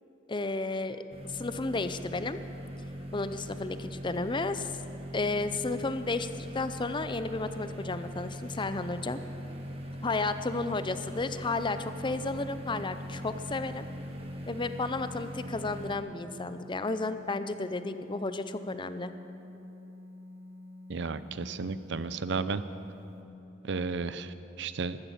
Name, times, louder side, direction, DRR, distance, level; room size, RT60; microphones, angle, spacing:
voice 1, 0.3-1.0 1.3-2.4 3.1-4.7 5.1-9.2 10.0-13.9 14.5-19.1, left 3 dB, 25° left, 11 dB, 0.6 m, -32 dB
sound 1, 1.1-15.9, equal, 30° right, 1.6 m, -41 dB
sound 2, 11.8-23.2, left 2 dB, 80° right, 1.7 m, -48 dB
voice 2, 20.9-22.6 23.6-25.0, right 4 dB, 65° right, 14 dB, 0.6 m, -33 dB
15.5 x 13.0 x 7.3 m, 3.0 s
head